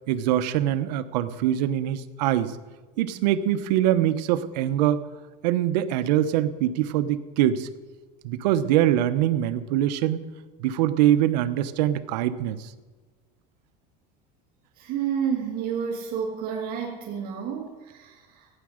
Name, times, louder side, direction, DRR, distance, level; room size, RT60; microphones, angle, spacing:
voice 1, 0.1-2.6 3.0-5.0 5.4-7.7 8.2-10.2 10.6-12.7, right 12 dB, 85° right, 12 dB, 0.9 m, -23 dB
voice 2, 14.8-18.5, right 7 dB, 45° right, -2 dB, 2.0 m, -30 dB
16.0 x 9.8 x 6.4 m, 1.3 s
cardioid pair, 150°, 21 cm